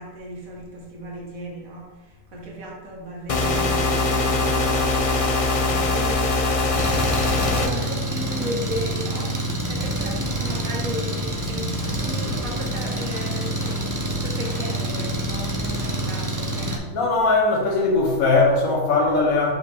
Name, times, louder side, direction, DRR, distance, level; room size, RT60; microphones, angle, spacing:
voice 1, 0.0-6.7 7.5-9.3 9.7-16.9, equal, 85° right, -2 dB, 1.7 m, -36 dB
sound 1, 3.3-7.7, left 2 dB, 45° left, 0.4 m, -22 dB
sound 2, 5.1-16.6, left 1 dB, 70° left, 1.8 m, -41 dB
Engine, 6.7-16.8, right 1 dB, 20° right, 0.7 m, -27 dB
voice 2, 16.9-19.5, left 3 dB, 90° left, -1 dB, 1.5 m, -19 dB
7.1 x 4.9 x 3.4 m, 1.3 s
omnidirectional pair, 1.4 m